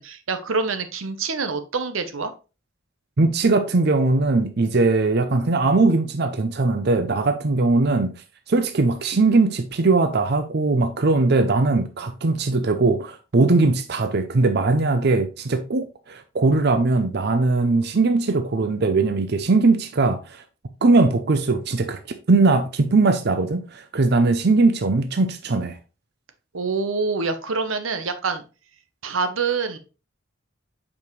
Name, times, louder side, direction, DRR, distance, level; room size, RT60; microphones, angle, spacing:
voice 1, 0.0-2.3 26.5-28.4 29.0-29.8, right 4 dB, 90° right, 0.9 m, -26 dB
voice 2, 3.2-8.1 8.5-20.4 20.8-22.0 22.3-25.8, right 3 dB, 55° right, 0.6 m, -20 dB
7.0 x 5.3 x 3.1 m
head